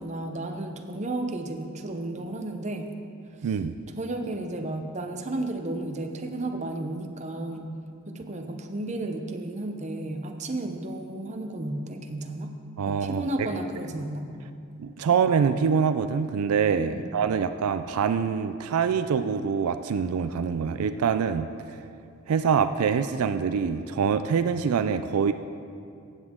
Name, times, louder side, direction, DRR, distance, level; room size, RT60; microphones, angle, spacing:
voice 1, 0.0-2.9 3.4-3.5 4.0-7.7 8.1-12.5 12.9-14.3 16.9-17.2, right 2 dB, 30° right, 4 dB, 0.7 m, -33 dB
voice 2, 3.4-3.7 12.8-13.5 14.8-21.5 22.3-25.3, right 6 dB, 80° right, 10 dB, 0.4 m, -25 dB
15.0 x 8.2 x 3.7 m, 2.5 s
head